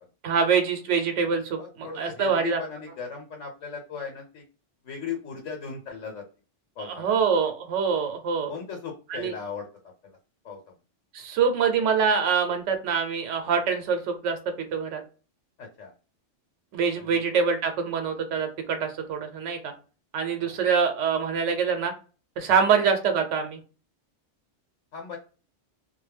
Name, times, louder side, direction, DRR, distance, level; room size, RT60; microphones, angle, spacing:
voice 1, 0.2-1.6 2.0-2.6 7.0-8.5 9.1-9.3 11.1-15.0 16.7-19.7 20.1-21.9 22.4-23.6, right 6 dB, 80° right, 5 dB, 0.9 m, -25 dB
voice 2, 1.6-4.4 4.8-6.2 6.8-7.2 8.5-9.7 10.0-10.2 10.4-10.6 15.6-15.9 17.0-17.2 20.4-20.6 22.5-22.7 24.9-25.2, left 6 dB, 90° left, 2 dB, 1.1 m, -37 dB
2.3 x 2.1 x 3.3 m, 0.35 s
omnidirectional pair, 1.2 m